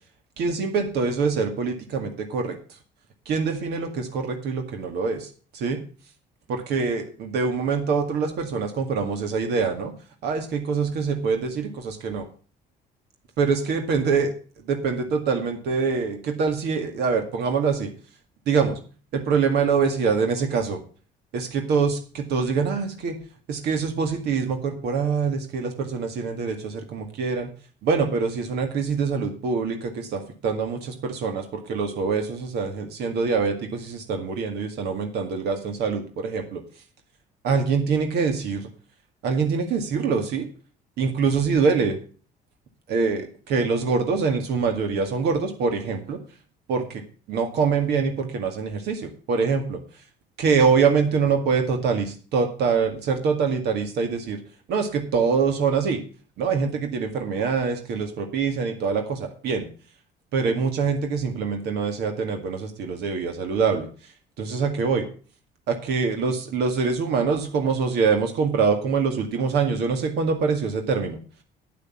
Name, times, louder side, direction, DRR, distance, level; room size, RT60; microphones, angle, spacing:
voice 1, 0.4-2.6 3.3-5.3 5.5-5.8 6.5-9.9 10.2-12.2 13.4-14.3 14.7-17.9 18.5-18.8 19.1-20.8 21.3-23.2 23.5-27.5 27.8-36.6 37.4-38.7 39.2-40.5 41.0-42.0 42.9-46.2 46.7-47.0 47.3-49.8 50.4-54.4 54.7-56.0 56.4-59.7 60.3-63.9 64.4-65.1 65.7-71.2, right 5 dB, 75° right, 5 dB, 2.1 m, -24 dB
8.7 x 8.3 x 7.1 m, 0.39 s
cardioid pair, 110°, 17 cm